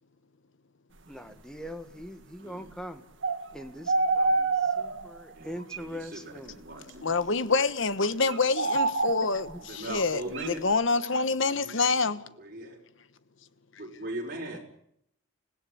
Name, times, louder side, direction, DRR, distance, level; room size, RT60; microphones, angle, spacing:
voice 1, 1.1-3.0 3.5-6.6 9.5-9.6 10.3-10.4 14.5-14.6, equal, 5° left, 1.6 m, -42 dB
sound 1, 3.2-3.5 3.9-5.2 5.7-5.8 6.5-7.1 8.2-9.6 10.3-10.5, right 3 dB, 60° right, 1.7 m, -27 dB
voice 2, 7.0-9.5 9.7-12.2, left 4 dB, 65° left, 1.1 m, -26 dB
voice 3, 9.7-10.6 11.6-11.8 12.4-12.8 13.8-14.6, right 1 dB, 40° right, 5.5 m, -38 dB
26.5 x 16.5 x 8.5 m
head